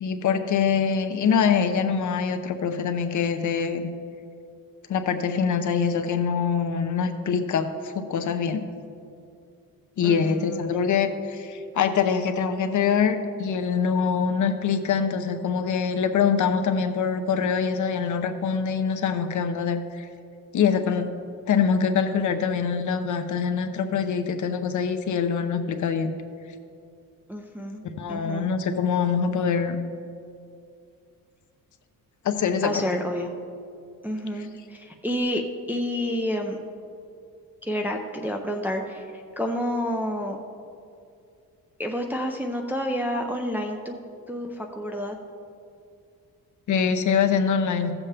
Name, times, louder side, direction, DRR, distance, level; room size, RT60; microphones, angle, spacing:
voice 1, 0.0-3.9 4.9-8.7 10.0-20.1 20.5-21.1 21.5-26.1 28.0-29.8 32.2-32.8 46.7-47.9, left 6 dB, 55° left, 7 dB, 0.7 m, -24 dB
voice 2, 10.0-10.8 27.3-27.8 28.1-28.5 32.6-33.3 34.0-35.4 35.7-36.6 37.6-39.1 39.4-40.4 41.8-43.9 44.3-45.2, equal, 5° right, 2 dB, 0.4 m, -29 dB
15.5 x 7.3 x 3.3 m, 2.4 s
wide cardioid pair, 170°, 35 cm